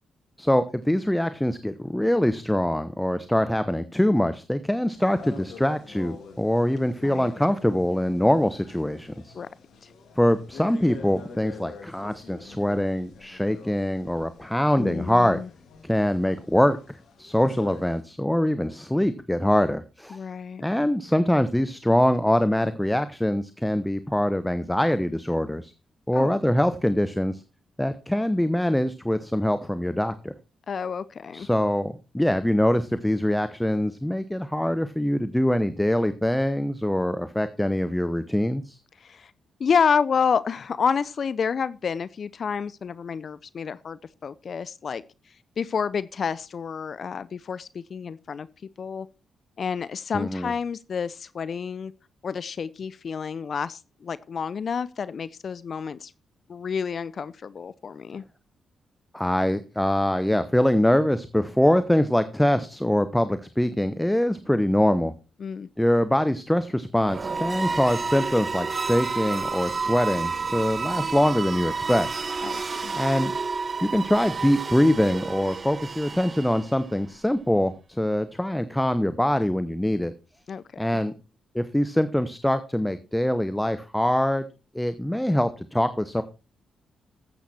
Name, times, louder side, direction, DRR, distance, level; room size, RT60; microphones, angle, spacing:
voice 1, 0.4-9.3 10.2-15.4 15.8-20.2 20.6-25.7 26.1-27.4 27.8-30.3 31.3-38.8 50.1-50.5 59.1-65.1 65.8-72.1 72.4-72.5 72.9-73.3 73.8-80.1 80.8-81.1 81.5-84.4 84.7-86.2, left 1 dB, 5° left, 0.9 m, -23 dB
sound 1, 4.9-18.0, left 5 dB, 75° left, 2.3 m, -47 dB
voice 2, 14.8-15.5 20.1-20.6 26.1-26.4 30.7-31.5 39.0-39.3 39.6-45.0 45.6-48.5 48.8-49.1 49.6-51.9 52.2-56.1 56.5-58.2 65.4-65.7 72.4-72.9 80.5-80.6, left 6 dB, 55° left, 0.5 m, -29 dB
sound 2, 67.0-76.9, right 4 dB, 45° right, 0.7 m, -30 dB
13.0 x 8.1 x 4.3 m
hypercardioid pair, 45°, 0 cm